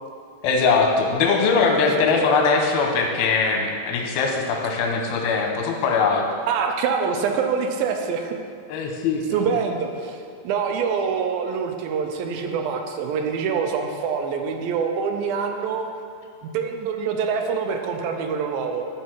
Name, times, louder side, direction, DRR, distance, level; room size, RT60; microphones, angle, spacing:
voice 1, 0.4-6.2 8.7-9.4, left 4 dB, 85° left, 2 dB, 2.8 m, -21 dB
voice 2, 6.5-8.4 9.3-10.2 10.4-15.9 16.4-18.8, right 6 dB, 85° right, 4 dB, 2.4 m, -25 dB
12.0 x 4.6 x 4.5 m, 2.3 s
omnidirectional pair, 4.2 m